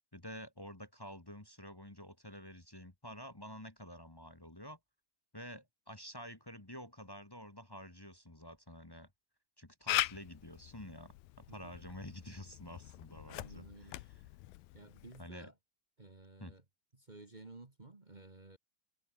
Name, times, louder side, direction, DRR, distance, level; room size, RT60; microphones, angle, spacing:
voice 1, 0.1-4.8 5.3-9.1 9.6-14.2 15.2-15.5 16.4-16.5, equal, 15° left, 1.0 m, -49 dB
Camera, 9.9-15.3, left 17 dB, 85° left, 2.6 m, -41 dB
voice 2, 13.3-14.0 14.7-15.5 16.0-16.6 16.9-18.6, right 2 dB, 35° right, 0.7 m, -54 dB
omnidirectional pair, 4.1 m